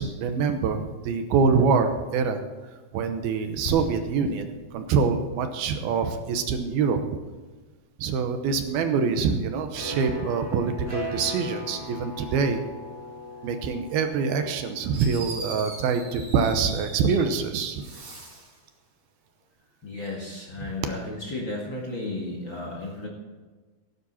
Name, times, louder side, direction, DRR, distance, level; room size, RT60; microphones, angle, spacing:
voice 1, 0.0-2.4 2.9-7.0 8.0-12.6 13.4-17.8 20.6-20.7, right 5 dB, 75° right, 7 dB, 2.7 m, -25 dB
sound 1, 3.7-8.0, left 5 dB, 80° left, 3.3 m, -44 dB
sound 2, 9.7-15.3, left 1 dB, 5° left, 4.8 m, -38 dB
Fireworks, 14.9-17.4 17.7-18.6, right 3 dB, 55° right, 5.2 m, -40 dB
voice 2, 19.8-23.1, left 2 dB, 40° left, -2 dB, 2.0 m, -34 dB
17.5 x 9.7 x 4.3 m, 1.3 s
omnidirectional pair, 4.6 m